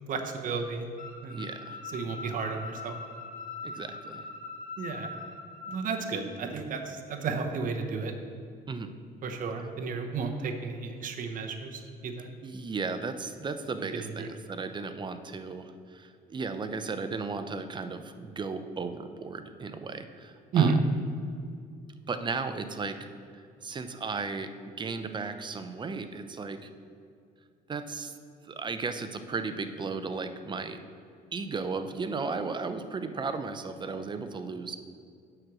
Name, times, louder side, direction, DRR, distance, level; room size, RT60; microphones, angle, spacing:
voice 1, 0.1-0.9 1.2-1.4 1.8-3.0 4.8-5.1 5.7-8.1 9.2-12.3 13.9-14.3 20.5-20.8, right 5 dB, 50° right, 4 dB, 1.0 m, -32 dB
sound 1, 1.0-5.8, left 4 dB, 50° left, 1.4 m, -41 dB
voice 2, 1.3-1.8 3.6-4.2 8.7-8.9 12.4-20.7 22.1-23.1 23.6-24.5 24.8-26.7 27.7-28.1 28.4-30.8 31.3-34.8, right 4 dB, 25° right, 9 dB, 0.6 m, -35 dB
7.8 x 6.2 x 6.1 m, 2.3 s
cardioid pair, 110°, 17 cm